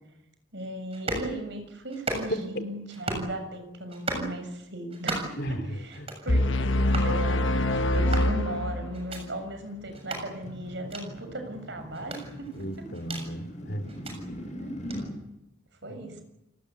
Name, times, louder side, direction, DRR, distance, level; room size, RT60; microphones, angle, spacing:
voice 1, 0.5-12.7 14.6-14.8 15.8-16.2, right 1 dB, 60° right, 7 dB, 7.1 m, -37 dB
sound 1, 0.9-1.3 1.9-2.5 2.9-3.3 3.9-4.3 4.9-5.4 5.9-6.3 6.9-7.1 7.9-8.3 8.9-9.2 9.9-10.2 10.9-11.0 11.9-13.3 13.9-14.2 14.9-15.0, right 2 dB, 30° right, 7.1 m, -34 dB
voice 2, 2.3-2.7 5.4-6.1 12.5-13.9 15.9-16.1, equal, 55° left, 9 dB, 3.0 m, -35 dB
sound 2, 6.3-9.2, left 1 dB, 70° left, 1.2 m, -25 dB
sound 3, 9.1-15.1, equal, 40° left, 7.7 m, -41 dB
29.5 x 19.5 x 8.4 m, 0.85 s
head